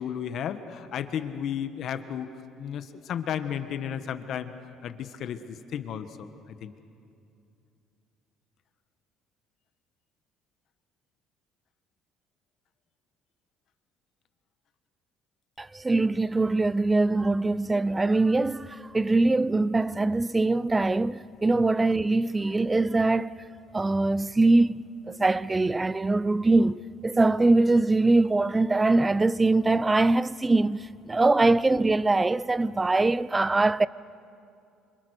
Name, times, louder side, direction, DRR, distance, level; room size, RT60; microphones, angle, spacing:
voice 1, 0.0-2.3 2.6-4.5 4.8-6.7 21.5-21.7, left 9 dB, 60° left, 1.5 m, -33 dB
voice 2, 15.6-23.4 23.7-33.9, right 2 dB, 15° right, 0.6 m, -23 dB
28.0 x 26.0 x 6.6 m
cardioid pair, 100°, 0 cm